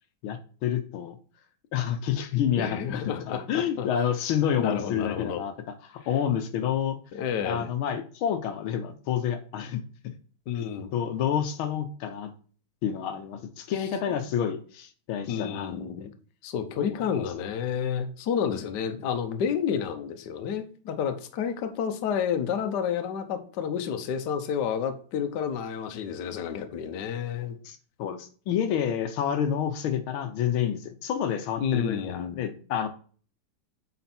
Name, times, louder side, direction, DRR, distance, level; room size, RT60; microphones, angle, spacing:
voice 1, 0.2-1.2 1.7-7.0 7.4-10.1 10.5-12.3 12.8-16.1 16.8-17.2 27.6-32.9, left 9 dB, 85° left, 8 dB, 1.7 m, -29 dB
voice 2, 2.6-3.9 4.6-5.4 7.1-7.7 10.5-10.9 15.3-16.1 16.4-27.6 31.6-32.4, left 7 dB, 65° left, 7 dB, 1.3 m, -30 dB
8.3 x 4.4 x 4.3 m, 0.41 s
omnidirectional pair, 2.2 m